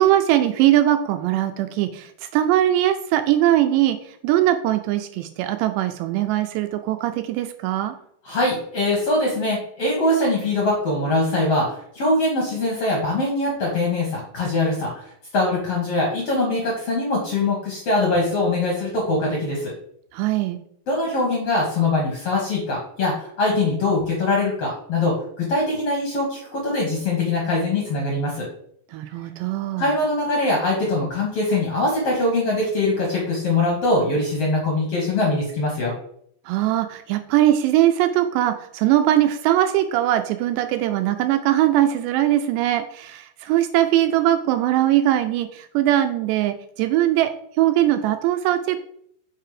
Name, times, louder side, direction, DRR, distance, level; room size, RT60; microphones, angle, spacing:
voice 1, 0.0-7.9 20.1-20.6 28.9-29.9 36.5-47.3 47.6-48.8, right 13 dB, 80° right, 8 dB, 2.6 m, -20 dB
voice 2, 8.2-19.7 20.9-28.5 29.8-35.9, left 2 dB, 65° left, -2 dB, 1.5 m, -22 dB
6.6 x 4.7 x 4.9 m, 0.66 s
omnidirectional pair, 5.2 m